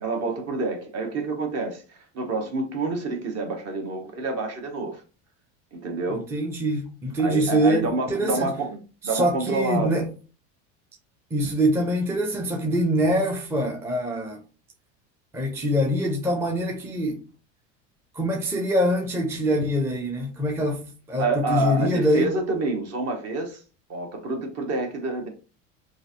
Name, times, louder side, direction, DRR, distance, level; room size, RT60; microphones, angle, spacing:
voice 1, 0.0-5.0 5.7-6.3 7.2-8.8 9.0-10.0 21.2-23.6 23.9-25.3, right 3 dB, 40° right, 1.1 m, -28 dB
voice 2, 6.1-8.5 9.0-10.1 11.3-14.4 15.3-17.2 18.1-22.3, equal, 5° right, 0.5 m, -24 dB
3.0 x 2.5 x 2.7 m
supercardioid pair, 95°, 37 cm